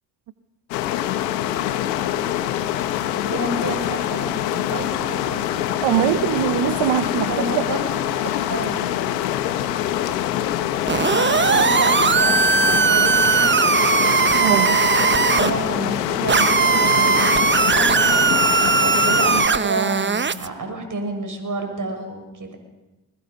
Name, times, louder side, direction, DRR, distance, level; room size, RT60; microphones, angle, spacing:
sound 1, 0.7-19.5, left 12 dB, 85° left, 1.4 m, -24 dB
voice 1, 3.1-5.6 7.3-8.9 10.9-13.5 14.4-18.3 18.8-22.6, right 3 dB, 40° right, 5 dB, 7.0 m, -30 dB
voice 2, 5.8-7.6 14.4-14.7, right 11 dB, 65° right, 11 dB, 1.2 m, -21 dB
sound 2, 10.9-15.5 16.3-20.5, right 5 dB, 25° right, 1.0 m, -18 dB
28.5 x 21.0 x 5.5 m, 1.0 s
hypercardioid pair, 50°, 48 cm